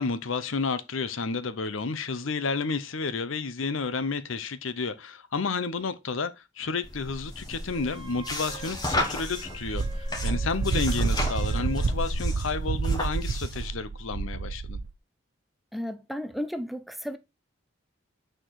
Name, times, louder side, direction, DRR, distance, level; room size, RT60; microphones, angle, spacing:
voice 1, 0.0-14.8, left 4 dB, 75° left, 0.7 m, -31 dB
sound 1, 6.8-13.6, left 1 dB, 20° left, 1.4 m, -33 dB
Wind instrument woodwind instrument, 7.7-11.9, right 4 dB, 25° right, 0.8 m, -47 dB
Wind, 9.6-14.9, right 4 dB, 90° right, 0.5 m, -29 dB
voice 2, 15.7-17.2, equal, ahead, 0.4 m, -33 dB
6.4 x 4.4 x 4.6 m
head